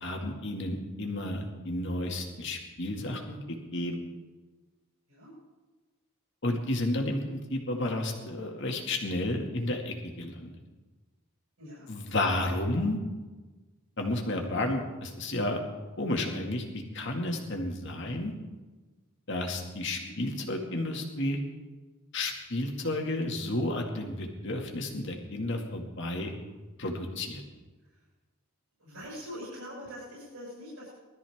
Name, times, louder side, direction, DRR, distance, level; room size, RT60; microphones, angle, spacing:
voice 1, 0.0-4.0 6.4-10.5 11.9-13.0 14.0-15.6 16.0-18.3 19.3-21.4 22.1-26.3 26.8-27.4, left 1 dB, 55° left, 2 dB, 2.1 m, -32 dB
voice 2, 11.6-12.3 14.3-14.5 20.0-20.1 27.8-28.1 28.8-31.0, equal, 85° right, -6 dB, 6.2 m, -44 dB
20.0 x 13.0 x 3.6 m, 1.2 s
head